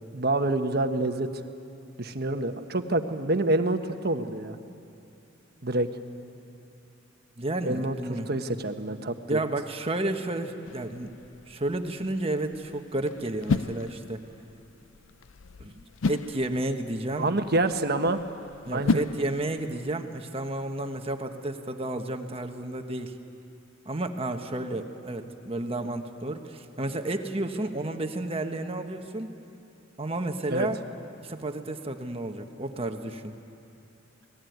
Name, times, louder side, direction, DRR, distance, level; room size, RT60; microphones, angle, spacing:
voice 1, 0.1-1.4 2.0-4.6 5.6-5.9 7.6-9.4 17.2-18.2 18.7-19.0 30.5-30.7, right 2 dB, 55° right, 7 dB, 1.3 m, -27 dB
voice 2, 7.4-8.3 9.3-11.1 11.5-14.2 15.6-17.3 18.6-23.2 23.8-29.3 30.0-30.8 31.2-33.3, right 2 dB, 30° right, 5 dB, 1.3 m, -31 dB
sound 1, 10.6-19.9, left 3 dB, 90° left, 0.5 m, -34 dB
29.0 x 19.5 x 9.4 m, 2.7 s
head